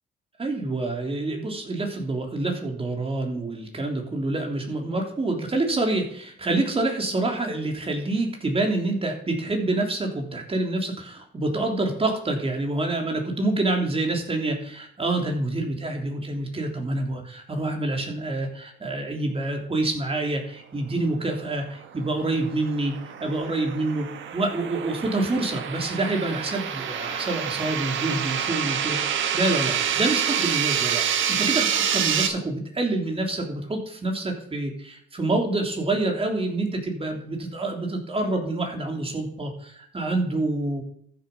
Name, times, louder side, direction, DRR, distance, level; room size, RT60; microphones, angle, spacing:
voice 1, 0.4-22.9 23.2-40.8, right 2 dB, 30° right, 2 dB, 3.3 m, -27 dB
sound 1, 21.8-32.3, right 8 dB, 75° right, 1.5 m, -27 dB
14.0 x 7.4 x 5.6 m, 0.65 s
cardioid pair, 90°, 20 cm